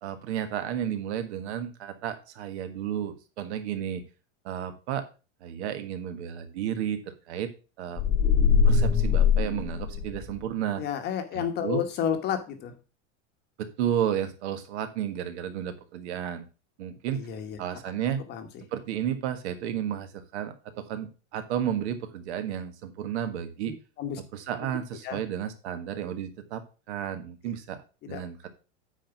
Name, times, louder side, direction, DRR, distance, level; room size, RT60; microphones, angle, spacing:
voice 1, 0.0-4.0 4.4-5.1 5.4-7.5 7.8-8.0 8.6-10.8 11.3-11.8 13.6-16.5 16.8-17.3 17.6-18.2 18.7-23.7 24.3-27.8 28.1-28.5, right 9 dB, 65° right, 9 dB, 1.6 m, -32 dB
sound 1, 8.0-10.4, left 6 dB, 10° left, 0.4 m, -22 dB
voice 2, 10.8-12.7 17.1-17.6 18.3-18.6 24.0-24.2 25.0-25.2 28.0-28.5, left 9 dB, 25° left, 7 dB, 1.1 m, -31 dB
9.0 x 4.5 x 5.8 m, 0.33 s
supercardioid pair, 165°, 36 cm